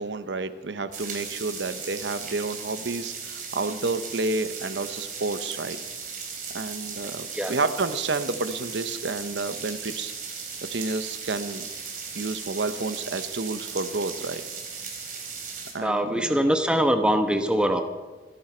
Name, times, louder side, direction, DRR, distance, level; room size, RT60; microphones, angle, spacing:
voice 1, 0.0-5.8 6.5-10.1 10.7-11.6 12.1-14.4 15.7-16.4, right 3 dB, 85° right, 12 dB, 0.8 m, -30 dB
sound 1, 0.9-15.7, right 5 dB, 45° right, 3.6 m, -37 dB
voice 2, 15.8-17.8, equal, 5° right, 6 dB, 1.0 m, -23 dB
27.0 x 11.0 x 4.4 m, 1.3 s
head